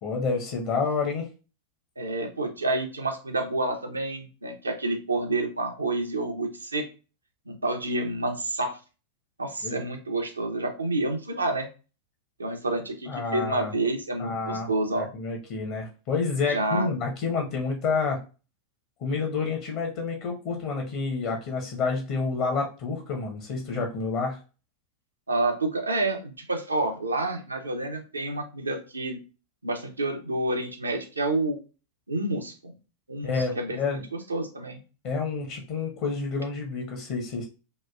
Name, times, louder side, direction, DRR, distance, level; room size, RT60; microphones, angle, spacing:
voice 1, 0.0-1.3 9.6-9.8 13.1-13.7 14.2-14.7 15.1-18.2 19.0-24.4 33.2-34.0 35.0-37.4, left 4 dB, 45° left, 2 dB, 0.6 m, -29 dB
voice 2, 2.0-6.9 7.5-8.8 9.4-11.7 12.4-15.1 16.4-16.9 25.3-29.2 29.6-31.6 32.1-32.7 33.1-34.8, right 2 dB, 80° right, 5 dB, 0.5 m, -29 dB
2.9 x 2.2 x 2.3 m, 0.33 s
figure-of-eight pair, 90°, 0 cm